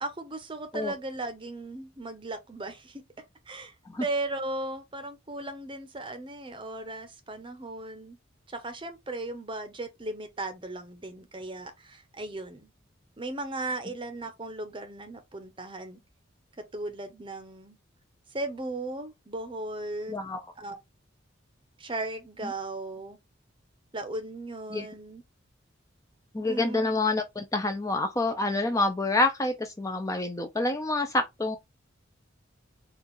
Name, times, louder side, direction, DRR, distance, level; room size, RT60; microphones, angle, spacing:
voice 1, 0.0-3.0 3.5-3.7 4.0-8.2 8.5-12.7 13.2-16.0 16.6-17.8 18.3-20.2 20.6-20.8 21.8-23.2 23.9-25.2 26.4-27.0, right 2 dB, 25° right, 0.8 m, -36 dB
voice 2, 20.1-20.4 24.7-24.9 26.3-31.6, left 2 dB, 15° left, 0.5 m, -27 dB
4.4 x 2.4 x 3.8 m
head